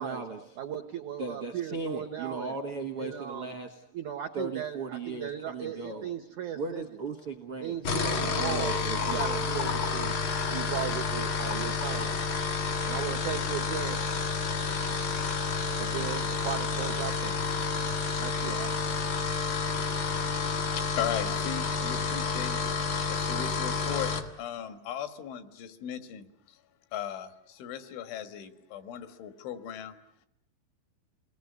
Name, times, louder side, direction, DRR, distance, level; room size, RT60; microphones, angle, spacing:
voice 1, 0.0-0.4 1.2-3.8 4.3-6.1 6.5-7.7 8.4-9.3, right 4 dB, 70° right, 3 dB, 1.3 m, -37 dB
voice 2, 0.6-2.5 3.0-3.6 3.9-6.9 7.6-10.1 10.5-12.3 12.8-14.3 15.8-17.4 18.2-18.7, right 10 dB, 90° right, 6 dB, 1.7 m, -37 dB
sound 1, 7.7-24.3, left 5 dB, 65° left, 1.3 m, -30 dB
voice 3, 19.8-24.1 24.4-26.6 26.9-30.0, left 10 dB, 85° left, 9 dB, 4.1 m, -38 dB
30.0 x 20.0 x 9.6 m, 0.77 s
omnidirectional pair, 5.3 m